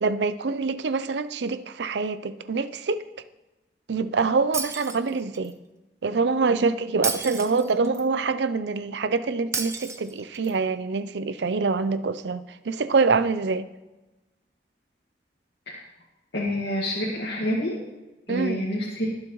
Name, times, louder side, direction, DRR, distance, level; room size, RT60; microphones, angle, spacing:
voice 1, 0.0-3.0 3.9-5.6 6.0-13.7 18.3-18.7, right 4 dB, 85° right, 14 dB, 0.5 m, -25 dB
Shatter, 4.5-5.5 7.0-8.0 9.5-10.5, right 5 dB, 15° right, 0.6 m, -32 dB
voice 2, 16.3-17.8 18.3-19.1, left 1 dB, 80° left, -5 dB, 1.9 m, -27 dB
20.5 x 7.2 x 3.1 m, 1.1 s
head